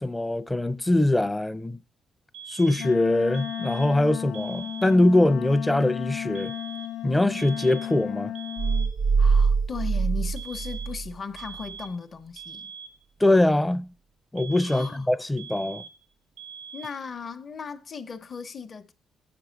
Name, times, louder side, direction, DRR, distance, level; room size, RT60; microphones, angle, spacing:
voice 1, 0.0-1.8 2.5-6.5 7.0-8.3 13.2-13.9 14.3-15.8, left 1 dB, 10° left, 0.5 m, -22 dB
sound 1, 2.3-3.0 3.3-4.0 4.3-5.0 6.4-7.0 7.4-8.0 8.4-9.0 10.4-11.0 11.4-12.0 12.4-13.0 14.4-15.1 15.4-16.0 16.4-17.0, right 7 dB, 85° right, 0.7 m, -43 dB
Wind instrument woodwind instrument, 2.8-8.9, left 11 dB, 80° left, 0.7 m, -34 dB
sound 2, 8.6-11.1 11.5-11.6, right 5 dB, 45° right, 0.5 m, -23 dB
voice 2, 9.2-12.7 14.6-15.1 16.7-18.9, left 5 dB, 40° left, 0.7 m, -37 dB
7.9 x 6.0 x 5.1 m
cardioid pair, 90°, 0 cm